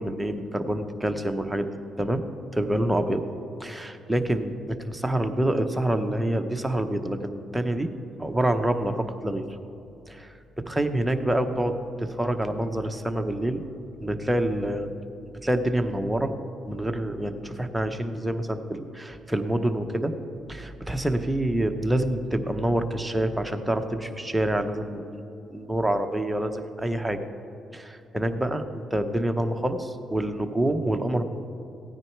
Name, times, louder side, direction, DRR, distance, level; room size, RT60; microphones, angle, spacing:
voice 1, 0.0-1.7 2.0-2.2 2.5-3.2 3.6-7.9 8.2-9.6 10.1-13.7 14.0-14.9 15.4-16.3 16.6-20.1 20.5-25.2 25.5-27.2 27.7-31.2, right 1 dB, 5° right, 6 dB, 0.9 m, -27 dB
15.5 x 9.6 x 4.6 m, 2.8 s
cardioid pair, 90°, 0 cm